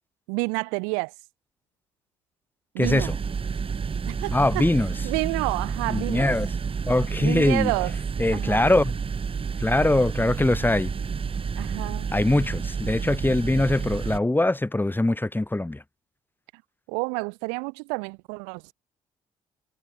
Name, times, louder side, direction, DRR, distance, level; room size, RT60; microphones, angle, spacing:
voice 1, 0.3-1.1 2.7-3.1 4.1-4.6 5.0-6.3 7.2-7.9 8.3-8.7 11.6-12.1 16.9-18.7, right 40 dB or more, 70° right, 1.2 m, -29 dB
voice 2, 2.8-3.2 4.3-4.9 5.9-6.5 6.9-7.7 8.2-8.9 9.6-10.9 12.1-15.8, left 2 dB, 15° left, 4.5 m, -22 dB
sound 1, 2.8-14.2, right 6 dB, 40° right, 3.8 m, -30 dB
figure-of-eight pair, 45°, 15 cm